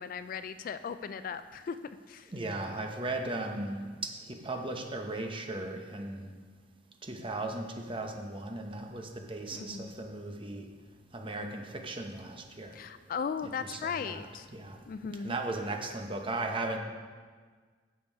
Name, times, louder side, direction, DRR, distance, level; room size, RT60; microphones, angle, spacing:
voice 1, 0.0-1.8 2.1-2.3 9.5-9.9 12.7-14.5 14.9-15.4, left 6 dB, 50° left, 12 dB, 0.3 m, -37 dB
voice 2, 2.3-3.9 4.4-6.3 7.0-10.6 11.1-12.7 13.4-14.8 15.2-16.8, right 2 dB, 30° right, 3 dB, 0.9 m, -37 dB
9.0 x 6.9 x 5.4 m, 1.6 s
head